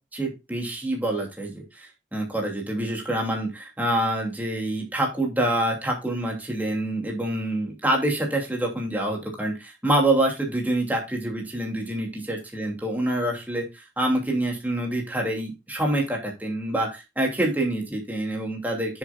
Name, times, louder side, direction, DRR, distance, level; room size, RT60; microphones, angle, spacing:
voice 1, 0.1-19.0, right 1 dB, 10° right, -1 dB, 2.7 m, -26 dB
10.5 x 7.2 x 2.4 m, 0.24 s
head